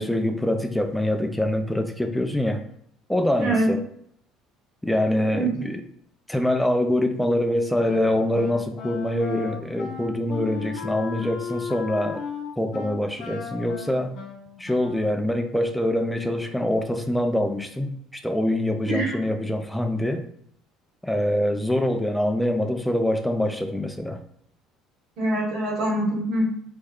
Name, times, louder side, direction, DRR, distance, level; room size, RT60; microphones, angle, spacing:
voice 1, 0.0-2.6 3.1-3.8 4.8-5.8 6.3-12.2 12.6-14.1 14.6-20.2 21.0-24.2, left 1 dB, ahead, 6 dB, 0.4 m, -24 dB
voice 2, 3.4-3.7 5.3-5.7 18.8-19.1 25.2-26.5, right 1 dB, 60° right, -2 dB, 1.2 m, -24 dB
Wind instrument woodwind instrument, 7.8-15.3, left 6 dB, 65° left, 0.6 m, -36 dB
3.2 x 2.1 x 3.5 m, 0.67 s
cardioid pair, 140°, 0 cm